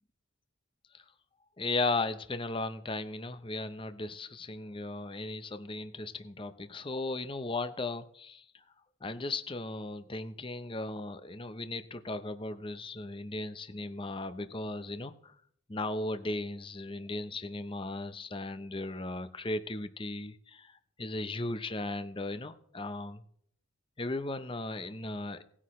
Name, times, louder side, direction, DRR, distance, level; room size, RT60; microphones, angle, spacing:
voice 1, 1.6-8.4 9.0-15.3 15.7-20.7 21.0-23.2 24.0-25.4, left 2 dB, 25° left, 11 dB, 0.7 m, -36 dB
18.5 x 9.9 x 3.2 m, 0.65 s
head